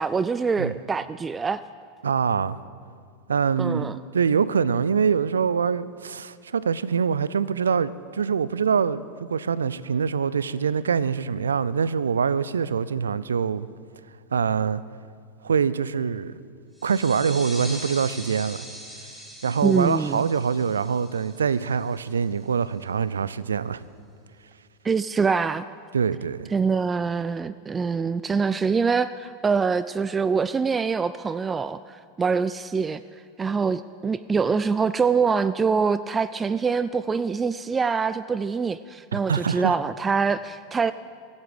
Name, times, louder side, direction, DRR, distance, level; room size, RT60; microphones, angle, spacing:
voice 1, 0.0-1.6 3.6-4.0 19.6-20.2 24.8-25.6 26.5-33.0 33.4-40.9, right 5 dB, 20° right, 0.3 m, -24 dB
voice 2, 2.0-2.6 3.3-13.7 14.3-14.8 15.4-16.4 16.8-18.7 19.4-23.8 25.9-26.5 39.1-39.8, right 6 dB, 85° right, 0.4 m, -24 dB
sound 1, 16.8-22.1, equal, ahead, 3.5 m, -41 dB
23.5 x 8.2 x 5.1 m
hypercardioid pair, 90°, 0 cm